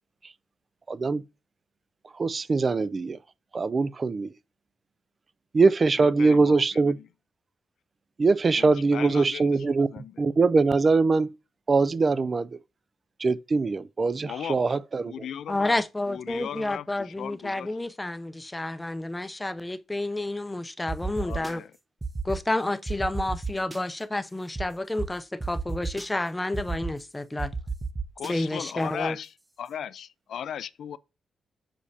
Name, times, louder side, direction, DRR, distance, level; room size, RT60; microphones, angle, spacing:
voice 1, 0.9-1.2 2.2-3.2 3.5-4.3 5.5-7.0 8.2-9.9 10.2-11.3 11.7-12.5 13.2-15.1, right 4 dB, 40° right, 0.3 m, -22 dB
voice 2, 6.0-7.1 8.5-10.2 14.3-14.8 15.0-15.7 16.1-17.7 21.2-21.7 28.2-29.3 29.6-31.0, left 9 dB, 75° left, 0.3 m, -37 dB
voice 3, 15.5-21.6 22.2-27.5 28.3-29.2, left 2 dB, 15° left, 0.6 m, -30 dB
sound 1, 20.9-21.5 22.0-22.4 22.9-23.8 24.5-24.6 25.0-25.1 25.4-26.0 26.5-26.9 27.4-28.3, right 4 dB, 20° right, 0.7 m, -31 dB
6.9 x 5.0 x 2.7 m
cardioid pair, 85°, 0 cm